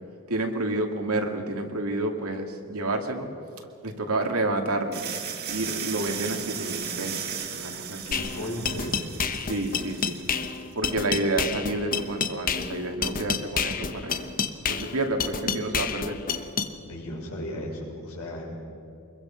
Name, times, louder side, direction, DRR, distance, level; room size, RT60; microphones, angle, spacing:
voice 1, 0.3-3.3 3.8-5.0 5.5-8.6 9.5-10.2 10.7-14.3 14.7-16.2, right 2 dB, 70° right, 3 dB, 2.5 m, -29 dB
sound 1, 4.9-10.6, right 7 dB, 45° right, 1.8 m, -36 dB
voice 2, 8.1-9.0 16.8-18.5, left 1 dB, 70° left, -2 dB, 6.1 m, -35 dB
sound 2, 8.1-16.7, left 6 dB, 40° left, 1.1 m, -29 dB
25.5 x 22.0 x 5.9 m, 2.7 s
head